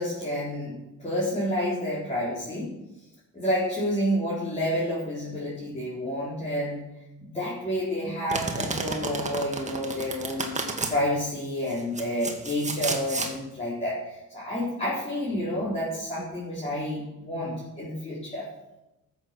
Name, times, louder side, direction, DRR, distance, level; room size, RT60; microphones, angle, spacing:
voice 1, 0.0-2.7 3.3-6.8 7.2-10.5 10.9-18.5, equal, 20° left, -9 dB, 4.5 m, -29 dB
Domestic sounds home sounds, 8.3-10.9 11.7-13.3, right 3 dB, 25° right, 2.0 m, -31 dB
14.5 x 7.2 x 6.3 m, 0.95 s
cardioid pair, 90°, 30 cm